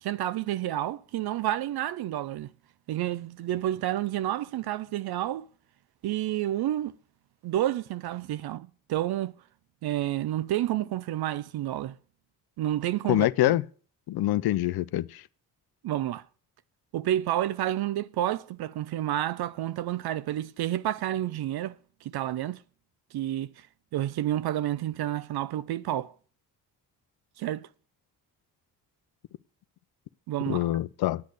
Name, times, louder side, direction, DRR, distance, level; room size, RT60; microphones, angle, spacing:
voice 1, 0.0-2.5 2.9-5.5 6.0-7.0 7.4-9.3 9.8-11.9 12.6-13.6 15.8-16.2 16.9-21.8 22.0-22.6 23.1-23.5 23.9-26.1 27.4-27.7 30.3-30.7, right 13 dB, 80° right, 0.5 m, -30 dB
voice 2, 13.1-13.6 14.1-15.2 30.5-31.2, left 15 dB, 75° left, 0.5 m, -25 dB
9.4 x 8.6 x 6.5 m
cardioid pair, 75°, 38 cm